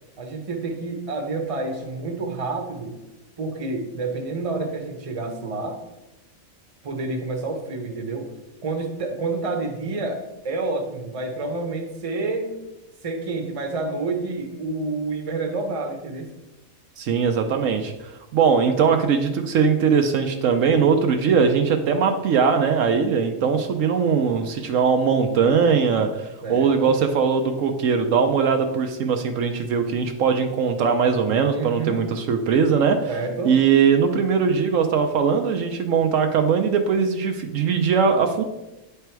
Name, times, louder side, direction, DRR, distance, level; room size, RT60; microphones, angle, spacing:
voice 1, 0.2-3.0 3.4-5.8 6.8-8.3 8.6-12.6 13.0-16.4 26.4-26.9 31.5-32.1 33.1-33.6, right 3 dB, 30° right, 4 dB, 0.8 m, -29 dB
voice 2, 17.0-33.1 33.4-38.4, right 6 dB, 70° right, 6 dB, 1.0 m, -20 dB
9.1 x 3.4 x 4.5 m, 0.99 s
omnidirectional pair, 1.4 m